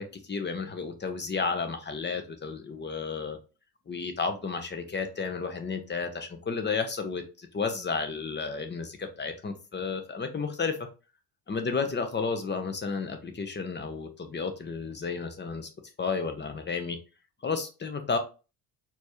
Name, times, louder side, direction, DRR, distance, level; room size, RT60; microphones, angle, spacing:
voice 1, 0.0-3.4 3.9-10.8 11.5-15.7 16.0-17.0 17.4-18.2, left 5 dB, 20° left, 7 dB, 1.0 m, -32 dB
4.4 x 2.9 x 3.1 m, 0.32 s
figure-of-eight pair, 50°, 48 cm